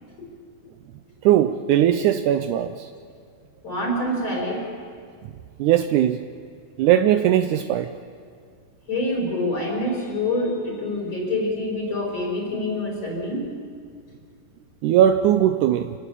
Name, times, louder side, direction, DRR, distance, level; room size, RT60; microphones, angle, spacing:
voice 1, 1.2-2.9 5.6-6.2 6.8-7.9 14.8-15.9, right 11 dB, 80° right, 8 dB, 1.8 m, -19 dB
voice 2, 3.6-4.7 8.9-13.4, left 1 dB, 30° left, -3 dB, 6.0 m, -26 dB
28.0 x 19.5 x 8.4 m, 2.1 s
omnidirectional pair, 4.4 m